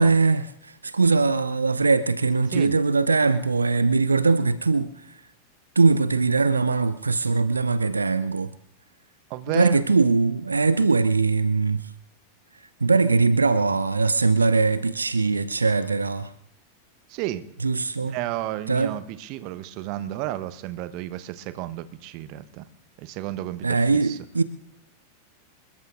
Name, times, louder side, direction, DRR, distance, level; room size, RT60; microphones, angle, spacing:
voice 1, 0.0-4.9 5.8-8.5 9.5-11.9 12.8-16.3 17.6-18.2 18.7-18.9 23.6-24.4, right 4 dB, 80° right, 0.6 m, -21 dB
voice 2, 9.3-9.8 17.1-17.5 18.0-22.6 23.0-24.2, right 14 dB, 45° right, 1.0 m, -32 dB
27.0 x 21.5 x 2.5 m
figure-of-eight pair, 90°, 0 cm